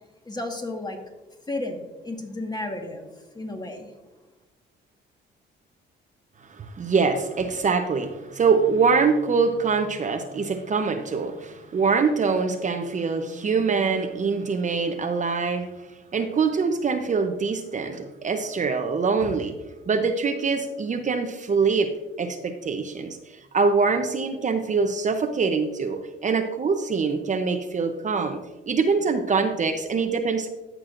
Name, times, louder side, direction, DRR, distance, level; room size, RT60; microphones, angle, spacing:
voice 1, 0.2-1.0 1.5-3.9, left 2 dB, 20° left, 3 dB, 1.5 m, -33 dB
voice 2, 6.5-15.7 16.1-19.5 19.9-21.9 22.2-28.4 28.7-30.5, right 5 dB, 40° right, 6 dB, 0.7 m, -24 dB
13.5 x 6.1 x 2.5 m, 1.1 s
cardioid pair, 90°, 20 cm